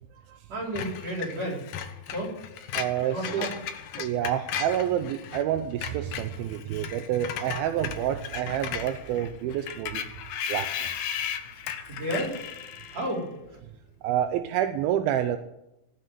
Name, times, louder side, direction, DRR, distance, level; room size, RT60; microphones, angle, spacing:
voice 1, 0.5-1.6 2.1-2.4 3.1-3.5 11.9-12.4 12.9-13.6, right 1 dB, 45° right, -2 dB, 5.3 m, -32 dB
Screech, 0.8-5.4 5.7-13.2, left 9 dB, 75° left, 2.7 m, -36 dB
voice 2, 2.7-3.5 4.0-10.0 10.5-10.9 14.0-15.4, right 10 dB, 85° right, 8 dB, 2.5 m, -28 dB
18.0 x 6.6 x 9.3 m, 0.87 s
omnidirectional pair, 4.4 m